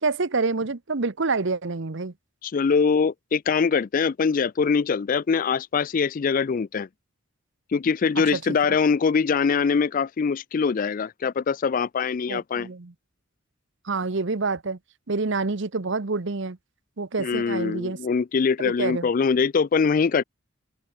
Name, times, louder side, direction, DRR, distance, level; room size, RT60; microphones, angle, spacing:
voice 1, 0.0-2.1 8.3-8.8 12.3-12.9 13.8-14.8 15.1-16.6 17.0-18.0 18.6-19.1, right 3 dB, 60° right, 0.9 m, -27 dB
voice 2, 2.4-6.9 7.7-12.7 17.2-20.2, left 5 dB, 40° left, 0.3 m, -23 dB
open air
head